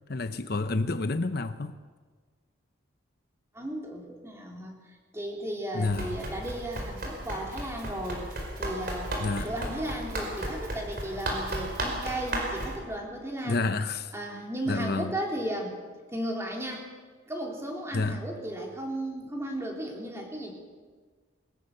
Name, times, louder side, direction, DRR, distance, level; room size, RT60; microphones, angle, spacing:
voice 1, 0.1-1.7 5.7-6.2 9.2-9.5 13.4-14.1 14.7-15.1 17.9-18.2, left 3 dB, 50° left, 0.8 m, -29 dB
voice 2, 3.5-4.7 5.1-8.3 8.6-13.6 14.1-15.8 16.1-16.9 17.3-20.5, right 1 dB, 15° right, 3.6 m, -35 dB
Run, 5.9-12.8, right 1 dB, 50° right, 4.9 m, -34 dB
21.5 x 20.5 x 6.8 m
head